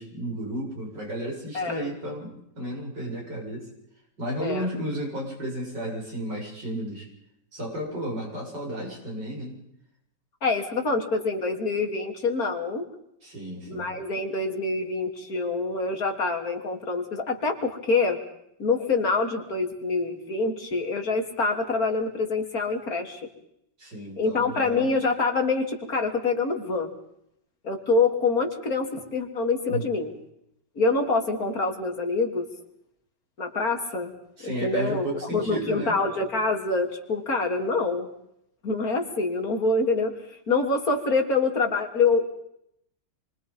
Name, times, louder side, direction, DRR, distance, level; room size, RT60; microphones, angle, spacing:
voice 1, 0.0-3.7 4.2-7.1 7.5-9.6 13.2-13.9 23.8-24.9 29.7-29.8 34.4-36.0, right 1 dB, 65° right, -2 dB, 8.4 m, -33 dB
voice 2, 1.5-1.9 4.4-4.7 10.4-12.8 13.7-18.2 18.6-23.2 24.2-26.9 27.6-30.1 30.8-32.5 33.4-34.1 34.4-35.1 35.3-38.1 38.6-40.1 40.5-42.3, left 3 dB, 50° left, 2 dB, 3.5 m, -26 dB
27.0 x 24.5 x 5.6 m, 0.76 s
omnidirectional pair, 2.0 m